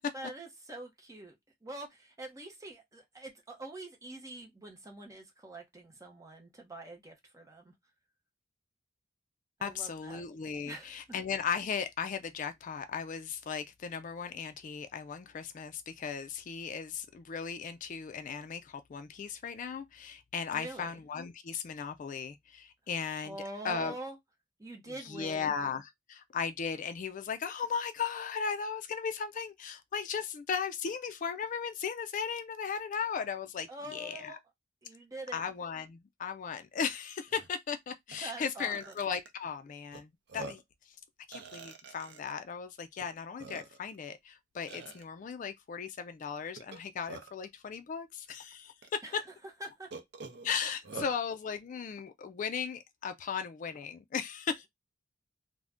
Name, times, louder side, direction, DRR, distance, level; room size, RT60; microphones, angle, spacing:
voice 1, 0.1-1.4 1.6-7.7 9.6-10.2 10.6-11.0 20.5-21.0 23.2-24.2 24.6-25.6 33.7-34.4 34.8-35.4 38.2-38.9 49.0-49.2 49.6-49.9, right 2 dB, 15° right, 0.7 m, -45 dB
voice 2, 9.6-23.4 23.6-23.9 25.0-34.4 35.3-40.6 41.3-49.0 50.4-54.7, left 6 dB, 40° left, 0.3 m, -37 dB
Burping eructation, 36.8-36.9 37.3-37.5 38.1-38.2 38.6-39.3 39.9-40.0 40.3-40.7 41.3-42.3 43.0-43.1 43.4-44.0 44.7-45.0 46.6-47.5 48.3-48.4 48.8-48.9 49.9-51.2, right 3 dB, 65° right, 0.6 m, -45 dB
2.5 x 2.1 x 3.4 m
head